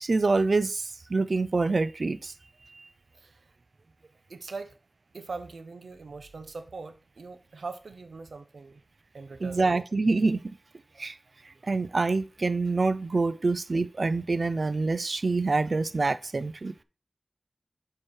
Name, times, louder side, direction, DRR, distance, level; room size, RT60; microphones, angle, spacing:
voice 1, 0.0-2.3 2.8-2.9 9.4-10.4 11.0-11.1 11.6-16.7, right 3 dB, 65° right, 0.5 m, -26 dB
voice 2, 4.3-4.7 5.1-8.8 9.1-9.7 13.3-13.4, right 4 dB, 90° right, 0.9 m, -41 dB
7.3 x 4.7 x 4.7 m
cardioid pair, 40°, 0 cm